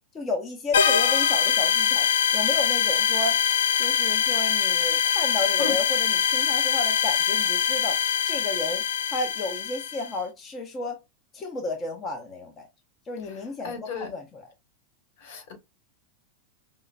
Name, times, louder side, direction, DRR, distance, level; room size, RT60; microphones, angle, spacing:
voice 1, 0.1-3.4 3.8-8.0 8.2-8.8 9.1-11.0 11.3-12.7 13.1-14.4, left 2 dB, 25° left, 0.7 m, -32 dB
sound 1, 0.7-10.1, left 8 dB, 90° left, 0.4 m, -23 dB
voice 2, 13.2-14.1 15.2-15.5, left 6 dB, 65° left, 1.6 m, -35 dB
5.4 x 2.1 x 2.5 m
hypercardioid pair, 120°, 0 cm